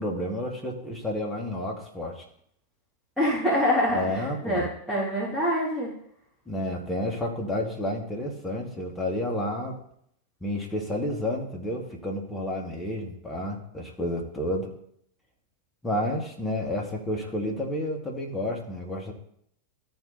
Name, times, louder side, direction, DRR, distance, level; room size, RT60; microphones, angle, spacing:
voice 1, 0.0-2.2 3.9-4.7 6.5-9.8 10.4-14.7 15.8-19.1, left 1 dB, 10° left, -1 dB, 2.2 m, -30 dB
voice 2, 3.2-5.9, equal, 5° right, -9 dB, 3.6 m, -25 dB
13.5 x 4.6 x 4.2 m, 0.69 s
figure-of-eight pair, 90°, 0 cm